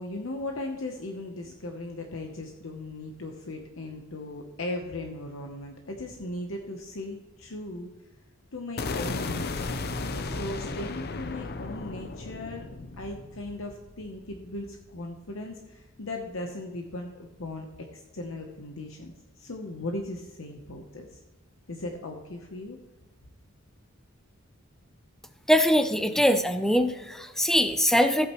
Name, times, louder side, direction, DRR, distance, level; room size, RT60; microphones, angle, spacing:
voice 1, 0.0-7.9 8.5-9.8 10.2-12.7 13.0-19.1 19.4-21.2 21.7-22.8, left 2 dB, 65° left, 2 dB, 0.9 m, -37 dB
sound 1, 8.8-14.8, left 3 dB, 45° left, 0.6 m, -35 dB
voice 2, 25.5-28.3, equal, ahead, 8 dB, 0.6 m, -22 dB
14.5 x 8.6 x 3.1 m, 1.2 s
head